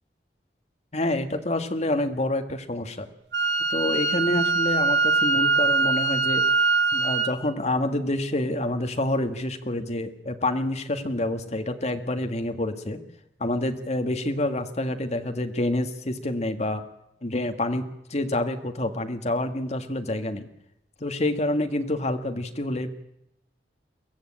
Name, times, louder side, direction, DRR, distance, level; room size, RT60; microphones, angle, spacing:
voice 1, 0.9-3.1 3.7-6.4 6.9-13.0 13.4-16.8 17.2-17.8 18.1-20.5 21.0-22.9, left 1 dB, 40° left, 6 dB, 1.7 m, -27 dB
Wind instrument woodwind instrument, 3.3-7.3, right 4 dB, 85° right, 1.8 m, -22 dB
22.5 x 14.5 x 8.8 m, 0.82 s
head